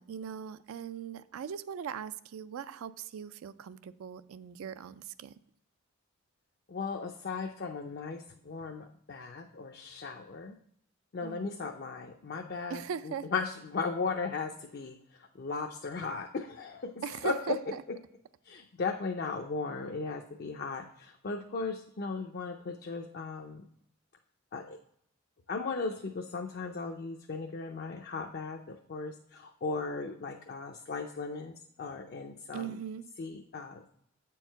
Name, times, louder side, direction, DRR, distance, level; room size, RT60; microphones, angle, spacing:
voice 1, 0.0-5.3 11.2-11.7 12.7-13.3 17.0-17.8 32.5-33.1, right 7 dB, 75° right, 14 dB, 0.3 m, -39 dB
voice 2, 6.7-10.5 11.1-15.0 15.4-16.9 17.2-17.3 18.5-23.6 24.5-24.8 25.5-32.8 33.2-33.9, left 4 dB, 45° left, 3 dB, 0.4 m, -37 dB
8.0 x 4.6 x 4.4 m, 0.70 s
head